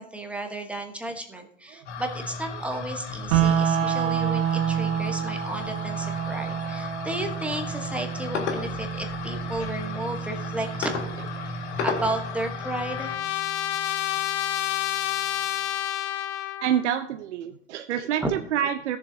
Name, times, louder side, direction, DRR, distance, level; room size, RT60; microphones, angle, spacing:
voice 1, 0.0-11.1 11.4-11.5 11.8-13.2 18.2-18.3, right 1 dB, 5° right, 3 dB, 1.1 m, -33 dB
sound 1, 1.9-13.2, left 4 dB, 65° left, 1.8 m, -34 dB
sound 2, 3.3-13.3, right 9 dB, 45° right, 1.2 m, -29 dB
Trumpet, 12.0-16.9, left 13 dB, 30° left, 0.7 m, -29 dB
voice 2, 16.6-19.0, right 10 dB, 70° right, 8 dB, 0.7 m, -27 dB
16.0 x 7.2 x 2.7 m, 0.68 s
hypercardioid pair, 115°, 36 cm